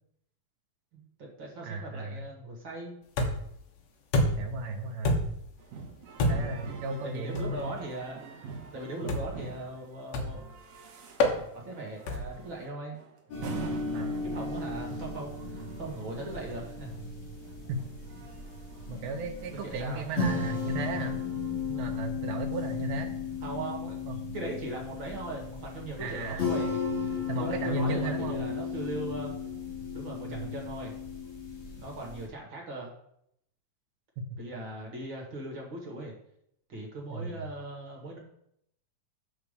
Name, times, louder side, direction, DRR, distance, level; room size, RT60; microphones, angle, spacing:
voice 1, 0.9-3.0 6.2-10.5 11.5-13.0 14.2-17.1 19.6-20.0 23.4-24.0 24.3-29.4 29.9-30.9 31.7-32.9 34.4-36.1 36.7-38.2, right 2 dB, 40° right, -1 dB, 2.1 m, -39 dB
voice 2, 1.6-2.2 4.4-5.2 6.3-7.8 13.9-14.2 17.7-17.8 18.9-21.2 21.7-23.1 24.1-24.2 26.0-26.5 27.3-28.4 30.3-30.5 34.2-34.3 37.1-37.5, right 3 dB, 80° right, 2 dB, 2.4 m, -35 dB
sound 1, 3.2-3.6 4.1-4.6 5.0-5.5 6.2-6.6 7.4-7.6 9.1-9.4 10.1-10.5 11.2-11.4 12.1-12.4, left 1 dB, 65° left, 2.0 m, -27 dB
sound 2, 5.6-20.7, right 5 dB, 60° right, 2.0 m, -46 dB
sound 3, 13.3-32.2, left 5 dB, 40° left, 2.9 m, -35 dB
8.1 x 4.5 x 6.6 m, 0.73 s
omnidirectional pair, 3.9 m